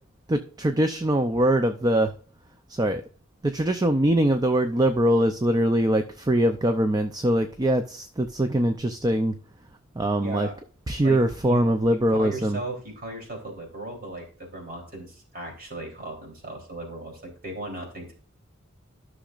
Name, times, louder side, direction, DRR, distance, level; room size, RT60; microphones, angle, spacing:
voice 1, 0.3-2.1 2.7-3.0 3.4-9.3 10.0-10.5 10.9-12.6, right 1 dB, 20° right, 8 dB, 0.5 m, -22 dB
voice 2, 10.2-10.5 11.0-18.1, right 1 dB, 45° right, 1 dB, 3.3 m, -37 dB
13.0 x 6.3 x 2.5 m, 0.41 s
head